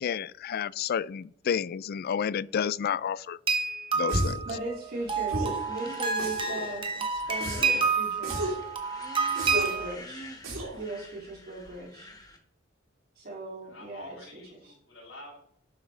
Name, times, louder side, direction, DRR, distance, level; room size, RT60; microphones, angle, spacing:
voice 1, 0.0-3.4 3.9-4.4, left 8 dB, 50° left, 0.3 m, -30 dB
sound 1, 3.5-9.9, right 5 dB, 25° right, 1.4 m, -29 dB
sound 2, 4.1-4.5 5.3-5.7 6.2-6.7 7.4-7.8 8.2-8.7 9.4-9.8 10.4-10.8, right 1 dB, 80° right, 3.4 m, -32 dB
voice 2, 4.5-8.6 9.5-10.3 10.7-12.1 13.2-14.2 14.5-14.7, right 2 dB, 50° right, 2.5 m, -38 dB
sound 3, 4.9-12.4, left 1 dB, 20° left, 1.6 m, -47 dB
voice 3, 13.6-15.4, left 1 dB, 80° left, 4.7 m, -47 dB
11.5 x 8.6 x 3.3 m
head